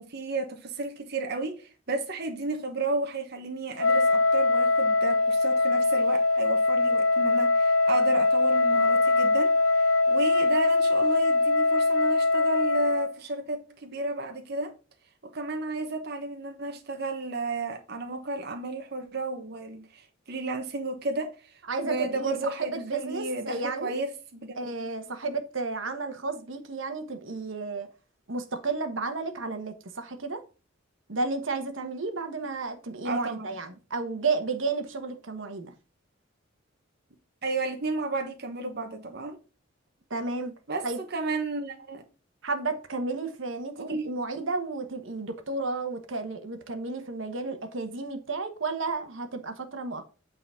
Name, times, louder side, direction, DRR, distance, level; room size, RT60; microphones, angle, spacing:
voice 1, 0.0-14.7 15.3-24.6 33.0-33.5 37.4-39.4 40.7-42.0 43.8-44.1, right 3 dB, 55° right, 1.1 m, -33 dB
Wind instrument woodwind instrument, 3.8-13.1, left 3 dB, 85° left, 0.6 m, -22 dB
voice 2, 21.7-24.0 24.6-27.9 28.3-30.4 31.1-35.7 40.1-40.5 40.8-41.0 42.4-50.1, right 3 dB, 75° right, 1.3 m, -32 dB
8.6 x 4.1 x 5.6 m
head